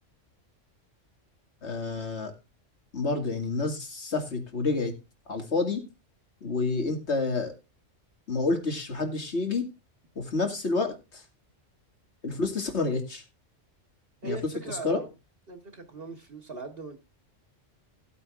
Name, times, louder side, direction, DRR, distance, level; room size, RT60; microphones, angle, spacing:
voice 1, 1.6-2.3 2.9-4.9 5.3-5.8 6.4-7.5 8.3-9.7 10.2-11.2 12.2-13.2 14.2-14.4 14.8-15.0, left 3 dB, 60° left, 2.4 m, -29 dB
voice 2, 14.2-15.1 15.5-17.0, right 3 dB, 50° right, 1.4 m, -39 dB
17.5 x 8.4 x 2.5 m
omnidirectional pair, 1.3 m